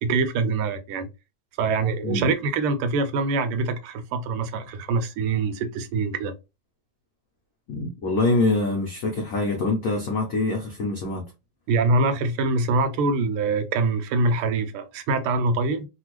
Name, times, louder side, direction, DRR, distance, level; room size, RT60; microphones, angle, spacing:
voice 1, 0.0-1.1 1.6-6.3 11.7-15.9, right 3 dB, 85° right, 1.5 m, -24 dB
voice 2, 2.0-2.3 7.7-11.3, left 3 dB, 85° left, 0.7 m, -25 dB
3.4 x 2.3 x 3.0 m
omnidirectional pair, 2.4 m